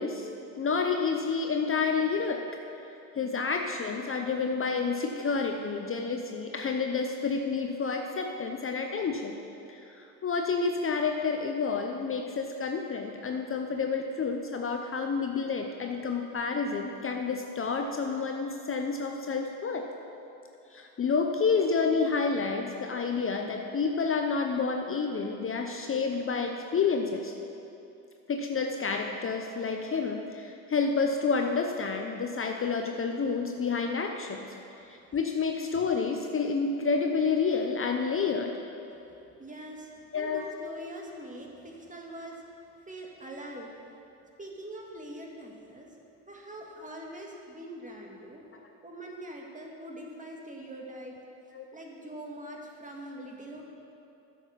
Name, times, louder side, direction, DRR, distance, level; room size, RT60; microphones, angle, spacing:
voice 1, 0.0-2.4 3.1-9.4 9.7-19.8 20.7-27.3 28.3-34.4 34.8-38.6 40.1-40.4 51.5-51.6, left 5 dB, 35° left, 3 dB, 0.8 m, -29 dB
voice 2, 39.4-42.5 42.8-43.7 44.4-45.9 46.3-48.4 48.8-51.1 51.7-53.6, right 1 dB, 20° right, -1 dB, 2.0 m, -43 dB
9.8 x 7.4 x 5.7 m, 2.8 s
supercardioid pair, 70°, 38 cm